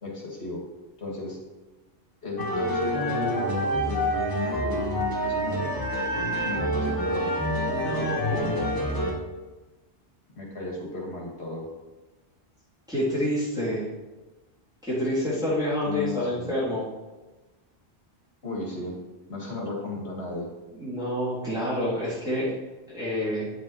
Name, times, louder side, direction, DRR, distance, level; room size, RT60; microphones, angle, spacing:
voice 1, 0.0-0.6 1.0-1.4 2.2-5.7 6.4-7.3 8.0-8.8 10.4-11.7 15.8-16.5 18.4-19.0 19.3-20.5, left 2 dB, 70° left, -1 dB, 2.0 m, -35 dB
sound 1, 2.4-9.1, equal, 20° left, 1.2 m, -27 dB
voice 2, 7.7-8.5 12.9-13.8 14.8-16.8 20.7-22.5 22.9-23.5, equal, 5° right, -10 dB, 2.8 m, -28 dB
9.3 x 7.5 x 3.1 m, 1.2 s
omnidirectional pair, 1.1 m